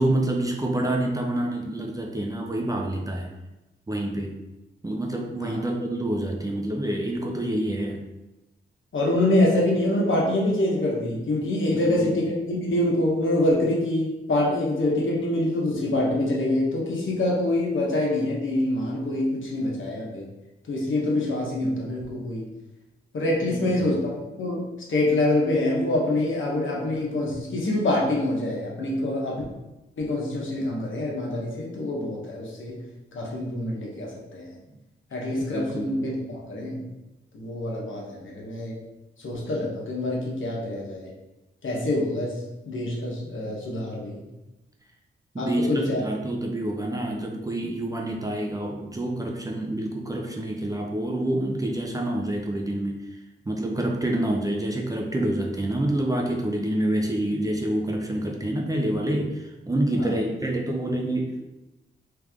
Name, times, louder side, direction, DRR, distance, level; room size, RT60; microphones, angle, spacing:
voice 1, 0.0-3.3 3.9-4.3 4.8-8.1 11.7-12.2 23.4-23.9 35.5-35.9 45.3-53.0 53.5-61.4, right 1 dB, 15° right, 0 dB, 0.5 m, -27 dB
voice 2, 8.9-20.2 20.7-22.4 23.1-24.6 24.9-29.4 30.0-32.8 33.1-34.5 35.1-36.8 37.3-38.7 39.2-41.1 41.6-44.2 45.4-46.1 60.0-60.2, left 1 dB, 70° left, -3 dB, 1.2 m, -25 dB
3.4 x 3.4 x 3.5 m, 1.0 s
wide cardioid pair, 120°, 21 cm